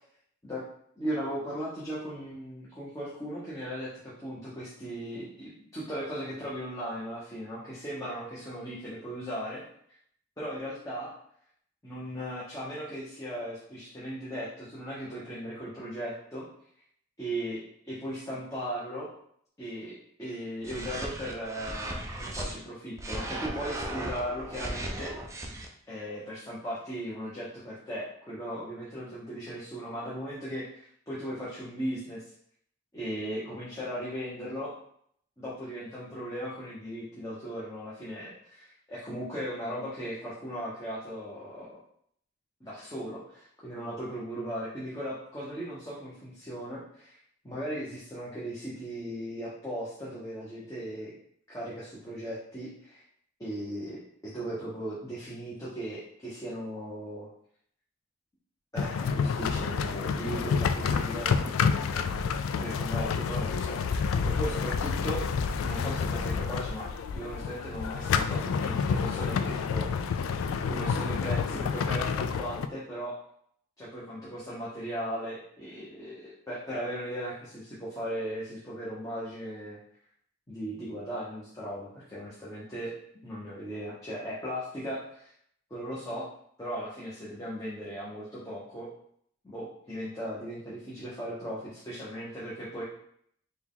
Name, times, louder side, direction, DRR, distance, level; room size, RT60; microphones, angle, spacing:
voice 1, 1.0-9.6 10.4-11.1 11.8-16.5 17.2-19.1 19.6-25.2 25.9-32.2 32.9-34.7 35.4-41.8 42.6-47.1 47.4-51.1 51.5-53.0 53.4-57.3 58.7-65.2 65.6-70.2 70.7-73.2 73.8-79.8 80.5-82.9 83.2-85.3 85.7-86.3 86.6-88.9 89.4-92.8, equal, 15° left, -9 dB, 0.9 m, -37 dB
sound 1, 20.6-22.5 23.0-25.7, right 1 dB, 15° right, 0.4 m, -36 dB
sound 2, 58.8-72.7, left 6 dB, 90° left, 0.3 m, -29 dB
4.3 x 2.4 x 3.6 m, 0.65 s
head